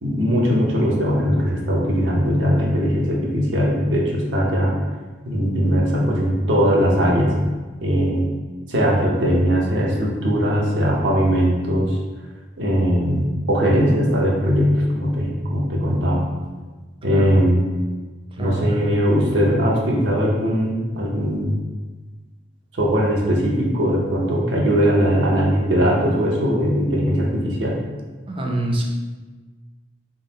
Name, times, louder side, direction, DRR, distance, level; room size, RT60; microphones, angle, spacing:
voice 1, 0.0-4.7 5.2-7.3 7.8-8.3 8.7-12.0 12.6-16.2 17.0-17.6 18.4-21.6 22.7-27.7, equal, 90° right, -3 dB, 0.8 m, -20 dB
voice 2, 18.3-18.8 28.3-28.8, right 1 dB, 30° right, 0 dB, 0.5 m, -25 dB
3.8 x 2.1 x 4.0 m, 1.3 s
head